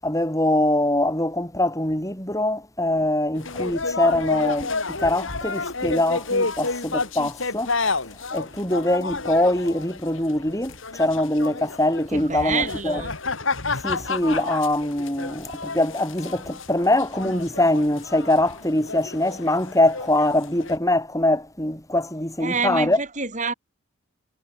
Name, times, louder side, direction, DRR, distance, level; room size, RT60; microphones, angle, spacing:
voice 1, 0.0-7.8 8.3-13.0 13.8-23.0, left 1 dB, 15° left, 7.0 m, -23 dB
sound 1, 3.3-20.8, left 3 dB, 70° left, 3.5 m, -30 dB
voice 2, 12.1-13.1 22.4-23.5, right 4 dB, 35° right, 6.0 m, -27 dB
head